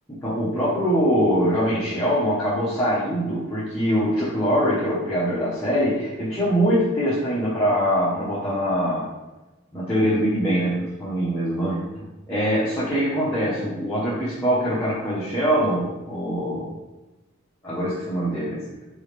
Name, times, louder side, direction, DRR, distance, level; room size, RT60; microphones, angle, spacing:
voice 1, 0.1-9.1 9.7-16.7 17.6-18.6, equal, 10° left, -10 dB, 0.9 m, -23 dB
4.2 x 3.5 x 3.3 m, 1.1 s
head